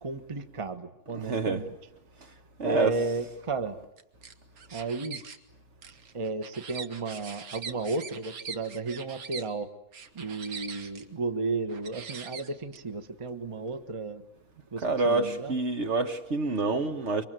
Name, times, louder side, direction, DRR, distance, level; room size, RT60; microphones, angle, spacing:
voice 1, 0.0-1.6 2.6-3.8 4.7-5.2 6.1-9.7 10.1-14.2 14.7-15.5, right 3 dB, 25° right, 1.1 m, -33 dB
voice 2, 1.1-1.7 2.6-2.9 14.8-17.2, right 3 dB, 50° right, 1.5 m, -27 dB
sound 1, 4.0-5.4 5.8-9.5 9.9-11.0 11.7-12.8, right 6 dB, 75° right, 1.9 m, -42 dB
26.0 x 23.5 x 9.1 m
omnidirectional pair, 1.6 m